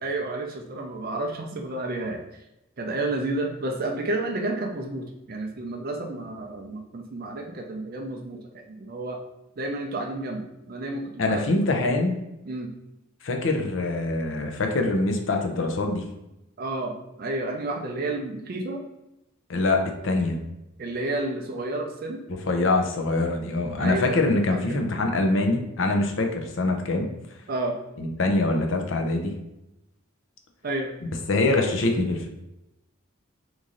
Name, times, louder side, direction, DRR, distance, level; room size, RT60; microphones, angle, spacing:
voice 1, 0.0-2.2 2.8-9.2 9.6-11.7 12.4-12.7 16.6-18.8 20.8-22.2 23.8-24.8 27.5-27.8 30.6-30.9, right 2 dB, 45° right, 2 dB, 0.4 m, -31 dB
voice 2, 11.2-12.2 13.2-16.0 19.5-20.4 22.5-27.1 28.0-29.3 31.3-32.3, left 2 dB, 60° left, 3 dB, 0.5 m, -24 dB
3.0 x 2.6 x 3.7 m, 0.90 s
head